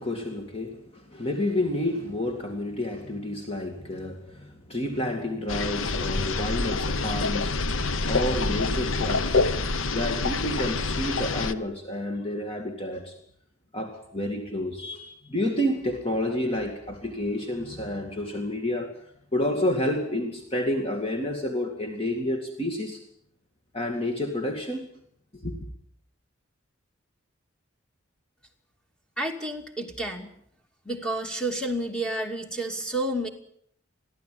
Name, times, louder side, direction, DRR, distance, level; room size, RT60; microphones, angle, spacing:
voice 1, 0.0-7.6 8.1-9.4 9.8-13.2 13.7-19.0 19.3-23.0 23.7-24.9 25.3-25.6, left 1 dB, 30° left, 3 dB, 2.2 m, -30 dB
sound 1, 5.5-11.5, left 3 dB, 80° left, 1.0 m, -27 dB
voice 2, 29.2-30.3 30.9-33.3, right 1 dB, 5° left, 3 dB, 2.5 m, -30 dB
23.0 x 15.0 x 9.3 m, 0.68 s
head